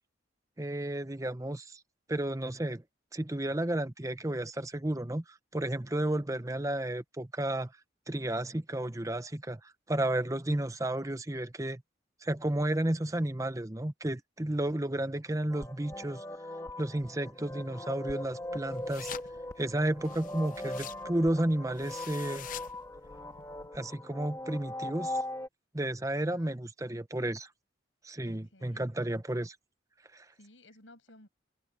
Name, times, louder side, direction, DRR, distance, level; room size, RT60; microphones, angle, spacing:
voice 1, 0.6-1.8 2.1-2.8 3.1-7.7 8.1-11.8 12.2-16.2 16.8-19.1 19.6-22.5 23.7-25.2 25.7-27.5 28.0-29.6 30.1-30.3, right 1 dB, 15° right, 0.8 m, -32 dB
sound 1, 15.5-25.5, left 1 dB, 15° left, 1.5 m, -40 dB
sound 2, 18.4-23.7, left 9 dB, 45° left, 0.5 m, -48 dB
voice 2, 28.2-28.9 30.4-31.3, left 1 dB, 85° left, 7.2 m, -57 dB
head